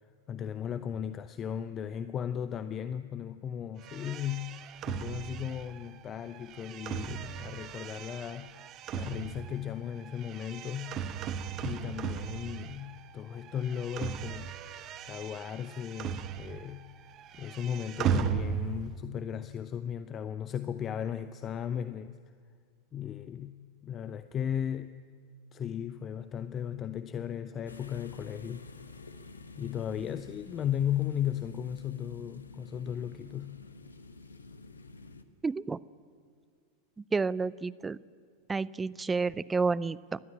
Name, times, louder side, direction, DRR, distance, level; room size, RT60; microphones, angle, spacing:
voice 1, 0.3-4.5 4.9-8.6 8.9-11.0 11.6-14.5 15.0-16.9 17.4-22.2 22.9-24.9 25.5-28.7 29.6-33.6, left 9 dB, 25° left, 12 dB, 0.7 m, -36 dB
sound 1, 3.8-13.1 13.4-16.8 17.1-19.0, right 8 dB, 35° right, 1.1 m, -37 dB
sound 2, 27.7-35.2, left 3 dB, 75° left, 1.2 m, -49 dB
voice 2, 35.4-35.8 37.1-38.0 38.5-40.2, right 4 dB, 15° right, 19 dB, 0.5 m, -30 dB
30.0 x 12.5 x 8.7 m, 2.1 s
figure-of-eight pair, 90°, 0 cm